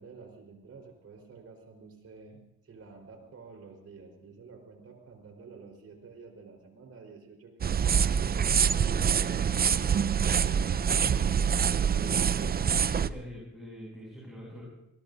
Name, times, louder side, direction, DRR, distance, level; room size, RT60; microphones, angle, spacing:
voice 1, 0.0-2.4 2.6-8.6 10.2-12.0, right 4 dB, 50° right, 3 dB, 4.5 m, -50 dB
sound 1, 7.6-13.1, right 7 dB, 30° right, 0.5 m, -25 dB
voice 2, 9.1-9.4 12.9-14.6, equal, ahead, -4 dB, 7.0 m, -44 dB
23.0 x 20.5 x 2.7 m, 0.81 s
cardioid pair, 90°, 30 cm